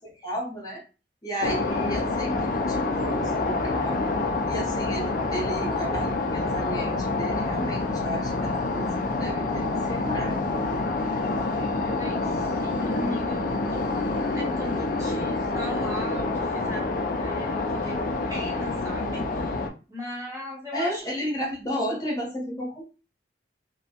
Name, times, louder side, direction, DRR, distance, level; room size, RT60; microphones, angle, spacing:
voice 1, 0.2-0.8 1.2-4.1 4.5-10.5 20.7-23.0, equal, 20° left, -3 dB, 0.7 m, -33 dB
sound 1, 1.4-19.7, left 3 dB, 45° left, 0.4 m, -27 dB
voice 2, 11.6-13.9 14.3-19.5 19.9-21.0, left 1 dB, 20° right, -3 dB, 0.8 m, -38 dB
2.6 x 2.1 x 2.8 m, 0.32 s
head